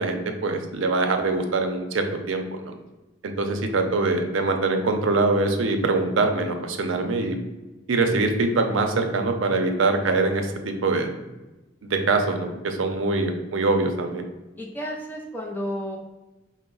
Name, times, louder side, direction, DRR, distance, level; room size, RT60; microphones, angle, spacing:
voice 1, 0.0-2.7 3.2-7.4 7.9-11.1 11.8-14.2, right 3 dB, 85° right, 5 dB, 0.5 m, -23 dB
voice 2, 14.6-16.0, equal, 10° left, -1 dB, 0.4 m, -32 dB
4.7 x 2.0 x 3.8 m, 1.1 s
head